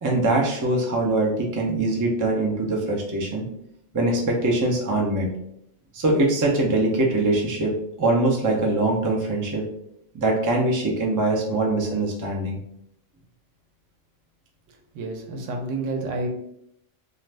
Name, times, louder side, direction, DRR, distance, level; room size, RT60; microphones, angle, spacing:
voice 1, 0.0-3.5 3.9-5.3 5.9-9.6 10.1-12.6, right 2 dB, 30° right, -1 dB, 0.3 m, -23 dB
voice 2, 14.9-16.3, right 2 dB, 85° right, 2 dB, 1.0 m, -29 dB
2.5 x 2.4 x 3.2 m, 0.76 s
omnidirectional pair, 1.3 m